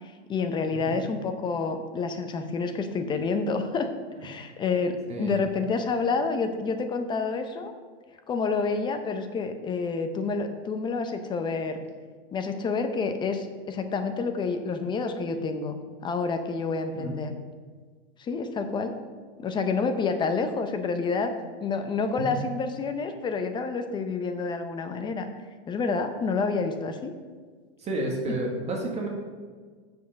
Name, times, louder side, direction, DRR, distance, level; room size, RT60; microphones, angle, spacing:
voice 1, 0.0-3.9 4.2-7.7 8.3-11.8 12.3-17.3 18.2-18.9 19.4-21.3 21.6-25.3 25.7-27.1, left 4 dB, 15° left, 7 dB, 0.6 m, -28 dB
voice 2, 5.1-5.4 17.0-17.1 22.2-22.3 27.8-29.1, right 1 dB, 20° right, 0 dB, 1.6 m, -31 dB
7.3 x 6.5 x 6.9 m, 1.5 s
supercardioid pair, 145°, 33 cm